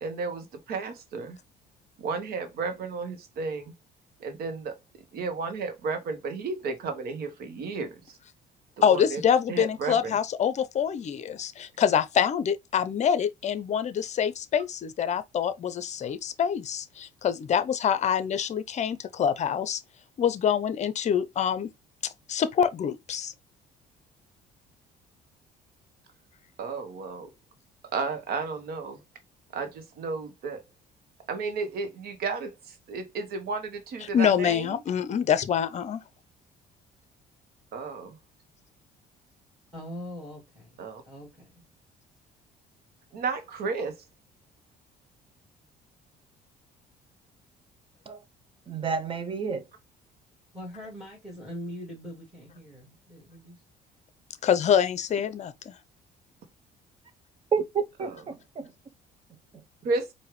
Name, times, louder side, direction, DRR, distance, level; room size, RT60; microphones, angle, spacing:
voice 1, 0.0-1.4 2.0-3.7 4.2-4.7 5.1-8.0 8.8-9.2 9.5-10.2 26.6-27.3 27.9-29.0 29.5-30.6 31.3-34.8 37.7-38.2 40.8-41.0 43.1-44.0 58.0-58.2 59.8-60.1, right 4 dB, 65° right, 1.2 m, -33 dB
voice 2, 8.8-19.8 20.2-21.7 22.0-23.3 34.0-36.0 54.4-55.7, left 8 dB, 45° left, 0.6 m, -26 dB
voice 3, 39.7-41.6 50.5-53.6, equal, 5° right, 2.4 m, -42 dB
voice 4, 48.7-49.6 57.5-58.7, right 6 dB, 30° right, 0.8 m, -30 dB
4.7 x 2.7 x 3.2 m
cardioid pair, 110°, 17 cm